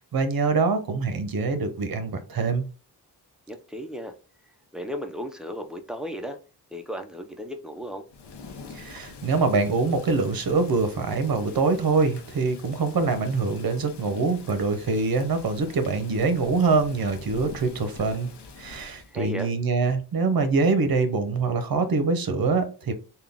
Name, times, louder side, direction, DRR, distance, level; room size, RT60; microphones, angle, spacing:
voice 1, 0.1-2.6 8.7-18.3 18.6-22.9, right 4 dB, 60° right, 0.8 m, -24 dB
voice 2, 3.5-4.1 4.7-6.4 6.7-8.0 19.1-19.5, equal, ahead, 0.5 m, -35 dB
Thunder / Rain, 8.1-19.2, left 4 dB, 85° left, 0.7 m, -45 dB
3.7 x 2.3 x 3.5 m
wide cardioid pair, 90°, 40 cm